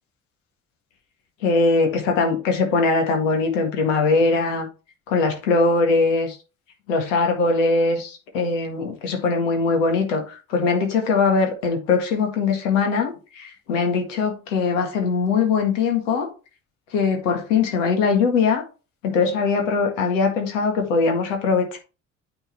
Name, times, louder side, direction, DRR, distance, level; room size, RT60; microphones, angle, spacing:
voice 1, 1.4-4.7 5.1-6.4 6.9-16.3 16.9-18.6 19.0-21.8, left 4 dB, 70° left, 1.9 m, -21 dB
8.8 x 3.9 x 4.6 m
figure-of-eight pair, 50°, 39 cm